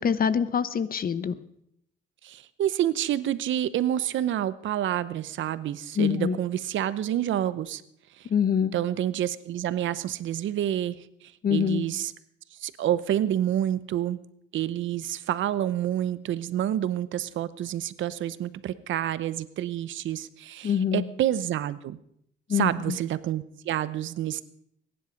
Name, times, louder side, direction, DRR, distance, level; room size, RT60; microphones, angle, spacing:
voice 1, 0.0-1.3 6.0-6.4 8.3-8.7 11.4-11.8 20.6-21.0 22.5-23.0, left 7 dB, 45° left, 15 dB, 0.9 m, -25 dB
voice 2, 2.2-7.8 8.2-8.3 8.7-12.1 12.6-14.2 14.5-22.0 22.5-24.4, right 11 dB, 75° right, 15 dB, 0.8 m, -28 dB
22.0 x 10.5 x 5.2 m, 0.72 s
cardioid pair, 90°, 20 cm